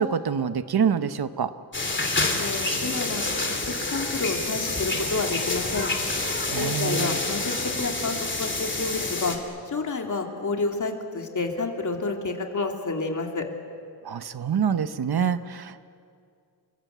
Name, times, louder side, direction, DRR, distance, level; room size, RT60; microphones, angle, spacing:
voice 1, 0.0-1.5 6.5-7.2 14.0-15.8, right 7 dB, 65° right, 11 dB, 1.1 m, -26 dB
sound 1, 1.7-9.4, left 2 dB, 30° left, 2.9 m, -28 dB
voice 2, 2.3-3.2 3.7-5.9 6.6-9.4 9.7-13.5, left 3 dB, 45° left, 2 dB, 3.0 m, -29 dB
29.0 x 23.0 x 8.2 m, 2.3 s
wide cardioid pair, 120°, 41 cm